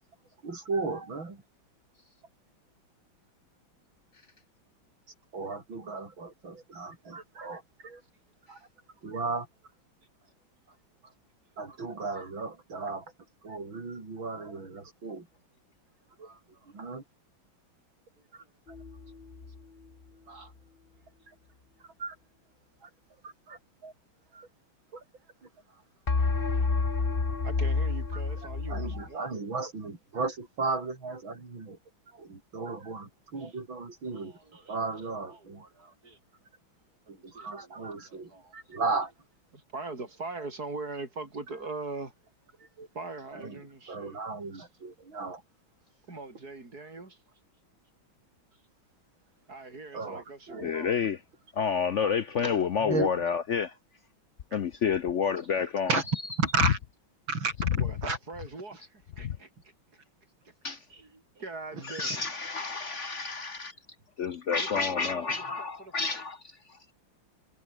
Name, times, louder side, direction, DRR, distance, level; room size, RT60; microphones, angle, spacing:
voice 1, 0.4-1.4 5.3-8.0 8.5-8.6 9.0-9.5 11.6-13.1 13.4-15.3 16.2-16.3 16.7-17.0 18.3-18.4 22.0-22.2 22.8-22.9 23.2-23.9 24.3-24.5 24.9-25.0 28.7-31.8 32.1-34.4 34.7-35.6 37.1-39.1 42.8-42.9 43.3-43.6 43.9-45.4 49.9-50.9 52.8-53.1 55.9-56.0 56.4-56.8 57.3-57.7 58.0-58.2, right 3 dB, 70° right, 5.6 m, -34 dB
voice 2, 16.2-16.7 18.2-18.3 20.3-20.5 25.7-25.8 26.7-26.8 27.4-29.4 33.3-33.6 34.1-34.8 35.0-36.2 37.1-38.5 39.5-42.1 42.9-44.2 44.5-44.7 46.1-47.2 49.5-51.0 57.7-59.5 60.4-60.5 60.9-62.3 64.6-66.2, right 3 dB, 45° right, 5.8 m, -43 dB
sound 1, 18.7-19.6 26.1-29.1, left 4 dB, 30° left, 1.8 m, -29 dB
voice 3, 50.6-51.2 51.5-53.7 54.5-56.0 59.2-59.4 60.6-60.8 61.8-63.7 64.2-66.4, left 6 dB, 70° left, 0.7 m, -29 dB
omnidirectional pair, 2.2 m